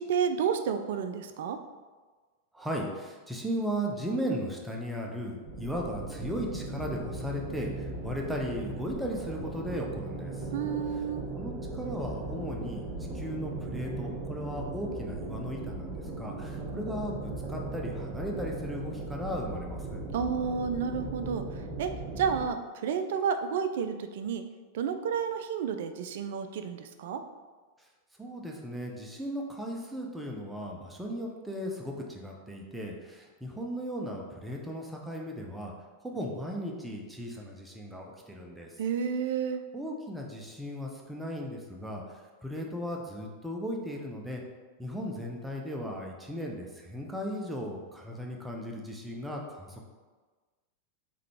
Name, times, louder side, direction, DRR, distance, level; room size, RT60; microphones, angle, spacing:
voice 1, 0.0-1.6 10.5-11.2 20.1-21.4 21.8-21.9 22.2-24.4 24.7-27.2 38.8-39.6, right 7 dB, 55° right, 8 dB, 0.3 m, -30 dB
voice 2, 2.5-10.5 11.3-12.9 13.1-20.0 28.2-35.7 36.0-38.7 39.7-44.4 44.8-49.8, equal, 5° right, -1 dB, 0.6 m, -36 dB
sound 1, 5.4-22.5, right 2 dB, 25° right, 1.0 m, -38 dB
3.7 x 3.3 x 3.5 m, 1.4 s
figure-of-eight pair, 90°, 0 cm